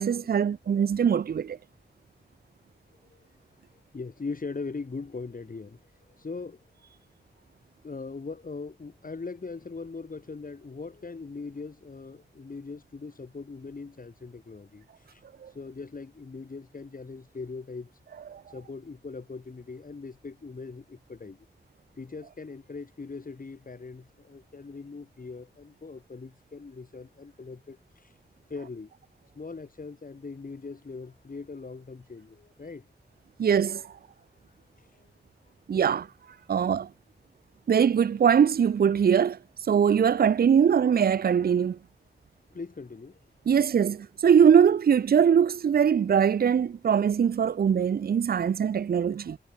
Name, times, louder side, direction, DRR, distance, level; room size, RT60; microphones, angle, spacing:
voice 1, 0.0-1.6 15.4-15.5 18.3-18.4 33.4-33.9 35.7-36.1 36.5-36.9 37.7-39.4 39.7-41.8 43.5-49.4, right 7 dB, 60° right, 0.5 m, -22 dB
voice 2, 3.7-6.9 7.8-17.9 18.5-21.5 22.0-28.2 28.5-28.9 29.3-32.9 34.5-35.1 35.4-35.5 42.5-43.2, left 4 dB, 50° left, 7.0 m, -41 dB
wide cardioid pair, 100°, 18 cm